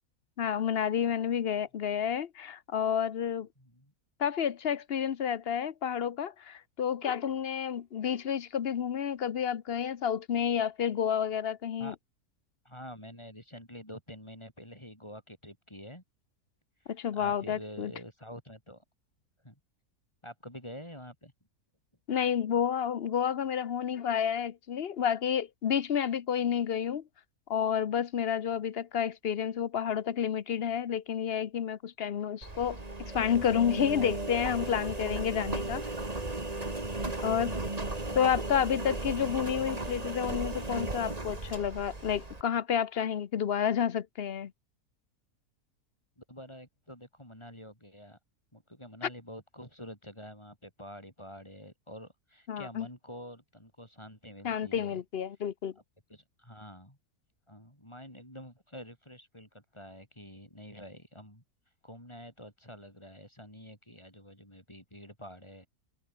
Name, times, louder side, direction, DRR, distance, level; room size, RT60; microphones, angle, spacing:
voice 1, 0.4-3.5 4.2-11.9 16.9-17.9 22.1-27.0 27.5-35.8 37.2-37.5 38.1-44.5 52.5-52.9 54.4-55.7, left 8 dB, 50° left, 0.9 m, -30 dB
voice 2, 3.6-3.9 11.8-12.0 12.6-16.0 17.1-18.8 19.4-19.6 20.2-21.3 35.8-35.9 37.2-38.3 46.2-48.2 48.5-55.0 56.1-57.0 57.5-61.4 61.8-65.7, equal, 20° left, 8.1 m, -48 dB
Engine, 32.4-42.4, right 2 dB, 25° right, 2.7 m, -36 dB
omnidirectional pair, 1.6 m